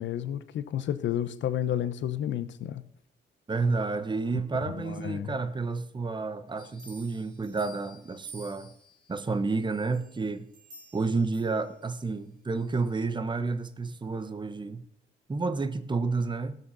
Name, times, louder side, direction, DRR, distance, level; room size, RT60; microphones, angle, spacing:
voice 1, 0.0-2.8 4.3-4.4 4.7-5.4, left 10 dB, 70° left, 0.9 m, -31 dB
voice 2, 3.5-8.7 9.1-10.5 10.9-14.8 15.3-16.6, right 3 dB, 25° right, 1.1 m, -30 dB
sound 1, 6.6-9.1 9.7-12.1 12.6-12.7, right 3 dB, 75° right, 3.0 m, -51 dB
16.5 x 6.4 x 5.5 m
cardioid pair, 90°, 20 cm